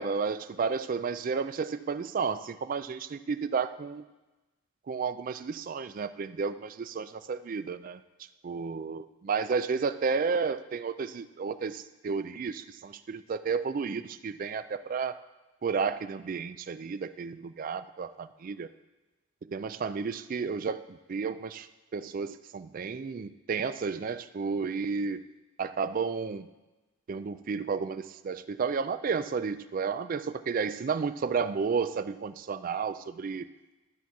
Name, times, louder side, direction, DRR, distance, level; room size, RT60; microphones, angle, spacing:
voice 1, 0.0-4.0 4.9-8.0 8.4-15.2 15.6-18.7 19.4-21.7 21.9-25.2 25.6-26.5 27.1-33.5, right 5 dB, 40° right, 12 dB, 0.3 m, -32 dB
12.5 x 4.3 x 4.7 m, 1.1 s
head